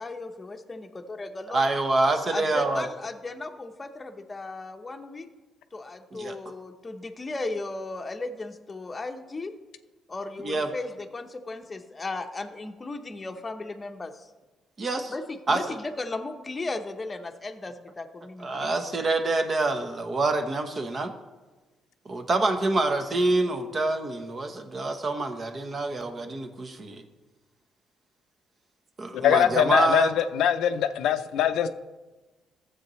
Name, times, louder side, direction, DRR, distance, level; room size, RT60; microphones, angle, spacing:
voice 1, 0.0-1.6 2.3-5.3 5.7-9.5 10.1-14.3 15.1-18.5, left 2 dB, 25° left, 5 dB, 0.8 m, -36 dB
voice 2, 1.5-2.8 6.1-6.4 10.4-10.7 14.8-15.1 15.5-15.6 18.4-21.1 22.0-27.0 29.0-30.1, right 2 dB, 35° right, 7 dB, 1.0 m, -26 dB
voice 3, 29.1-31.7, left 9 dB, 85° left, 11 dB, 0.5 m, -22 dB
13.5 x 7.7 x 3.1 m, 1.2 s
cardioid pair, 110°, 0 cm